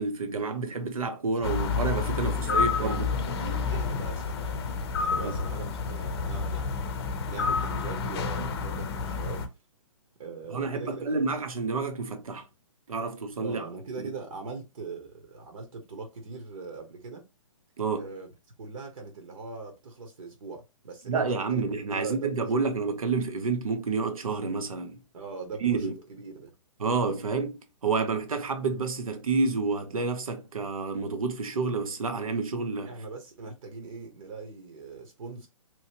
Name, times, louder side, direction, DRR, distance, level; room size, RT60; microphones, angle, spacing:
voice 1, 0.0-3.0 5.2-5.4 10.5-12.5 12.9-13.7 14.0-14.1 17.8-18.1 21.1-25.0 25.6-25.9 26.8-32.9, right 4 dB, 90° right, 0.8 m, -29 dB
sound 1, 1.4-9.5, left 5 dB, 45° left, 0.6 m, -29 dB
voice 2, 2.2-4.6 5.0-7.0 7.3-9.5 10.2-11.3 13.4-17.2 18.0-18.3 18.6-21.6 21.9-22.6 25.1-26.5 32.8-35.5, right 4 dB, 70° right, 1.1 m, -41 dB
3.0 x 2.7 x 2.8 m
hypercardioid pair, 150°, 18 cm